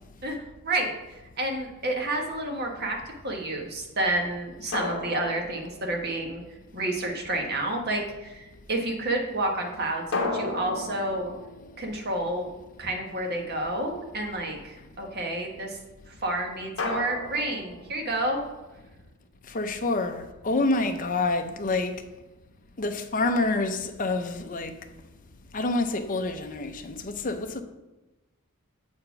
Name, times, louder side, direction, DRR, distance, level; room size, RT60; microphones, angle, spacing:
voice 1, 0.6-3.0 3.2-6.4 6.7-11.3 11.8-12.5 12.8-15.8 16.1-18.5, right 1 dB, 45° right, 1.3 m, -30 dB
sound 1, 2.1-2.7 4.7-6.5 10.1-12.7 16.8-18.4, left 3 dB, 60° left, 1.1 m, -35 dB
voice 2, 19.5-22.0 22.8-24.7 25.5-27.6, left 2 dB, 40° left, 0.7 m, -27 dB
7.7 x 4.3 x 5.8 m
head